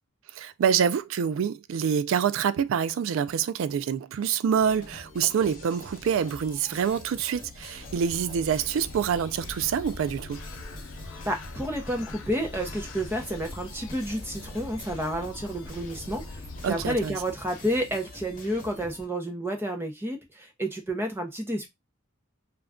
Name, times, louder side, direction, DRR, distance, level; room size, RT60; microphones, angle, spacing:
voice 1, 0.4-10.4 16.6-17.1, right 7 dB, 70° right, 0.3 m, -26 dB
sound 1, 4.5-19.1, left 2 dB, 40° left, 0.9 m, -46 dB
Bird, 7.5-17.4, left 2 dB, 70° left, 0.5 m, -42 dB
voice 2, 11.3-21.7, equal, 10° right, 0.6 m, -30 dB
2.4 x 2.2 x 3.5 m
head